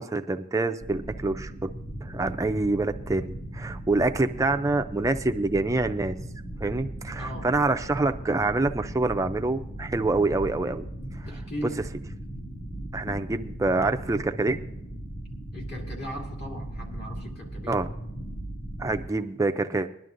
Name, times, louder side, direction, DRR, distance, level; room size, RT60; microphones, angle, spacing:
voice 1, 0.0-1.7 2.0-6.1 6.6-10.8 11.2-11.3 12.9-14.6 17.7-17.9 18.8-19.9, right 2 dB, 15° right, 7 dB, 0.4 m, -26 dB
sound 1, 0.8-19.1, right 1 dB, 70° left, 2.7 m, -38 dB
voice 2, 7.2-7.5 11.2-11.8 15.5-17.8, equal, 50° left, -1 dB, 2.5 m, -38 dB
20.5 x 11.0 x 2.6 m, 0.84 s
head